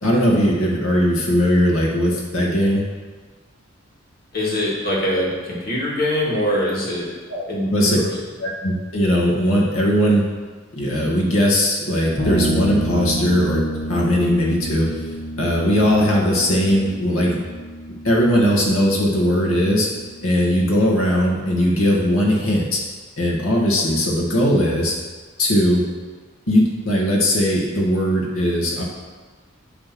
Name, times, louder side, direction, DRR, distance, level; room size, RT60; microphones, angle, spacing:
voice 1, 0.0-2.8 7.3-7.4 7.7-8.0 8.4-10.2 10.7-13.6 13.9-14.9 15.4-17.4 18.0-19.9 20.2-22.8 23.2-24.9 25.4-25.8 26.5-28.8, equal, 90° left, -2 dB, 1.8 m, -19 dB
voice 2, 4.3-7.1 7.5-8.1, left 1 dB, 45° left, -4 dB, 1.9 m, -23 dB
sound 1, 12.2-21.7, right 1 dB, 30° left, 1.1 m, -30 dB
8.8 x 3.5 x 6.0 m, 1.4 s
head